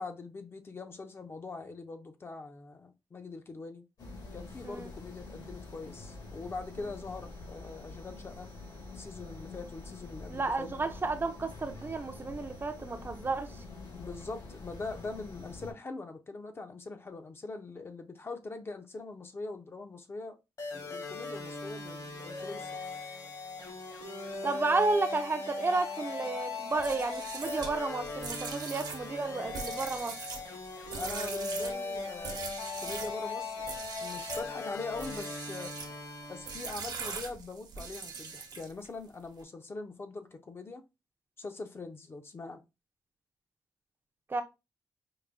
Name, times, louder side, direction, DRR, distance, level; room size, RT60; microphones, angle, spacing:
voice 1, 0.0-3.9 4.3-8.5 8.9-10.7 14.0-20.4 20.7-22.8 31.0-33.7 34.0-35.8 36.3-40.8 41.4-42.6, left 3 dB, 35° left, 0.5 m, -42 dB
sound 1, 4.0-15.7, left 3 dB, 70° left, 1.7 m, -46 dB
voice 2, 10.3-13.5 24.4-30.1 44.3-44.4, right 3 dB, 30° right, 0.5 m, -32 dB
sound 2, 20.6-37.0, left 3 dB, 55° left, 1.2 m, -39 dB
sound 3, 26.7-33.2 33.6-34.5 34.9-36.0 36.5-38.9, right 5 dB, 65° right, 0.8 m, -41 dB
4.7 x 2.6 x 2.5 m
wide cardioid pair, 135°, 7 cm